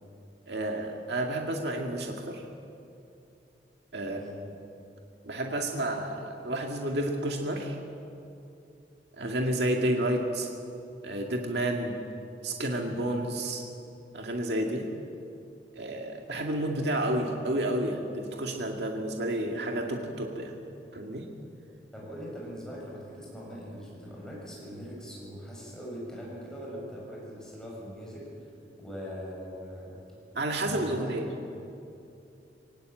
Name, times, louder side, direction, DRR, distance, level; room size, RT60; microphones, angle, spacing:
voice 1, 0.5-2.5 3.9-4.2 5.2-7.8 9.2-10.5 11.0-12.0 12.4-13.6 14.1-14.9 15.7-20.6 20.9-21.3 30.4-31.3, right 1 dB, 70° right, 1 dB, 2.1 m, -30 dB
voice 2, 4.0-4.4 21.9-28.5 28.8-30.0 30.7-31.1, equal, 5° left, -4 dB, 7.6 m, -41 dB
23.0 x 18.5 x 9.0 m, 2.7 s
head